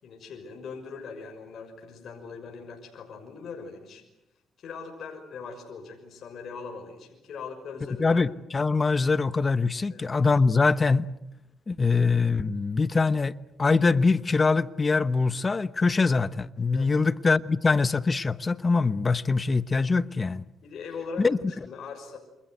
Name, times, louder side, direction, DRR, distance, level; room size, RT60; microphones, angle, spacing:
voice 1, 0.0-4.0 4.6-8.2 9.9-10.1 16.7-17.0 20.6-22.2, left 5 dB, 60° left, 6.2 m, -41 dB
voice 2, 8.0-11.1 11.7-20.4 21.2-21.4, left 4 dB, 30° left, 1.0 m, -23 dB
28.5 x 26.5 x 7.9 m
cardioid pair, 90°, 0 cm